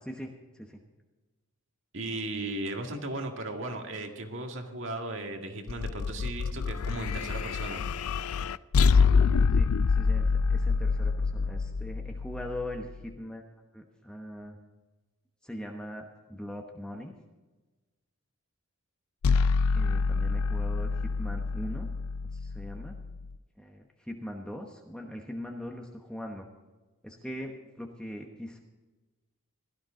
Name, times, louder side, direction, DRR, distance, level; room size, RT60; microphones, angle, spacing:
voice 1, 0.1-0.8 9.5-13.4 13.7-14.6 15.4-17.1 19.7-21.9 22.3-23.0 23.6-26.5 27.0-28.6, equal, 5° left, 1 dB, 1.1 m, -41 dB
voice 2, 1.9-7.8, right 2 dB, 60° right, 3 dB, 2.0 m, -36 dB
sound 1, 5.7-13.0 19.2-23.3, left 5 dB, 85° left, 0.4 m, -26 dB
16.5 x 13.0 x 3.8 m, 1.2 s
head